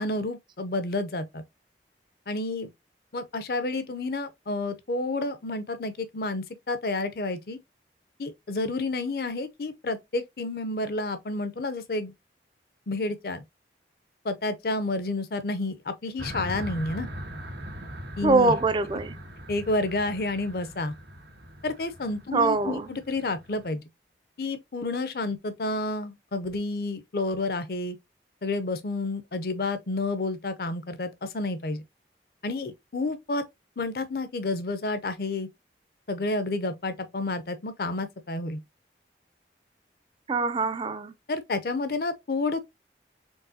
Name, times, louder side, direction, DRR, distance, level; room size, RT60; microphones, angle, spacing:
voice 1, 0.0-1.4 2.3-2.7 3.1-7.6 8.2-12.1 12.9-13.4 14.2-17.1 18.2-18.5 19.5-20.9 21.6-23.8 24.4-28.0 28.4-31.8 32.4-33.4 33.8-35.5 36.1-38.6 41.3-42.6, left 2 dB, 55° left, 0.6 m, -30 dB
sound 1, 16.2-23.7, equal, 75° right, 1.8 m, -41 dB
voice 2, 18.2-19.2 22.3-22.9 40.3-41.1, right 3 dB, 25° right, 0.3 m, -23 dB
4.5 x 3.4 x 2.7 m
head